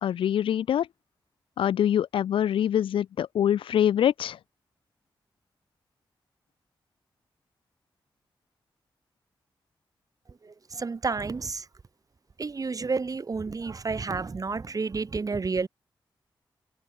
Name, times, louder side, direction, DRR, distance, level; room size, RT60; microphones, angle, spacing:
voice 1, 0.0-0.9 1.6-4.4, left 10 dB, 85° left, 0.4 m, -24 dB
voice 2, 10.7-11.6 12.4-15.7, right 4 dB, 45° right, 0.8 m, -30 dB
cardioid pair, 50°, 9 cm